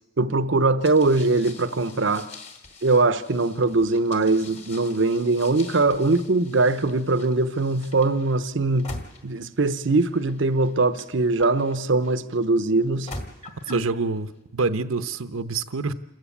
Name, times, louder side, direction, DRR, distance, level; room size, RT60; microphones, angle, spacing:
voice 1, 0.2-2.3 2.8-8.9 9.2-13.1 13.7-13.9, right 3 dB, 60° right, 0.7 m, -21 dB
sound 1, 0.8-12.1 12.8-13.9, left 2 dB, 30° left, 2.1 m, -44 dB
voice 2, 13.7-15.9, right 3 dB, 85° right, 0.9 m, -27 dB
27.5 x 14.5 x 8.5 m
head